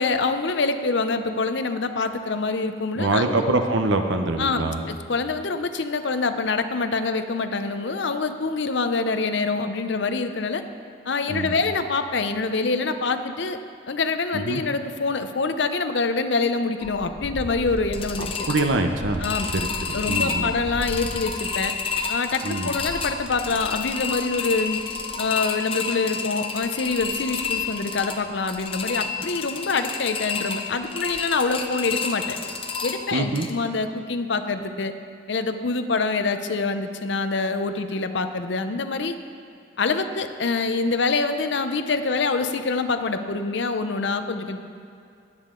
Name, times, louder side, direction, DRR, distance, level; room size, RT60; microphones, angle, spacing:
voice 1, 0.0-3.4 4.4-10.6 11.1-13.6 13.9-18.3 19.2-19.5 19.9-21.7 22.1-24.8 25.2-32.4 32.8-34.9 35.3-39.1 39.8-44.6, left 4 dB, 60° left, 9 dB, 0.6 m, -25 dB
voice 2, 3.0-4.9 11.3-11.5 14.3-14.6 18.2-19.3 19.5-20.5 22.4-22.8 33.1-33.5, right 2 dB, 65° right, 5 dB, 0.8 m, -24 dB
sound 1, 16.8-33.5, left 5 dB, 30° left, 0.7 m, -30 dB
19.5 x 7.4 x 3.8 m, 2.5 s
head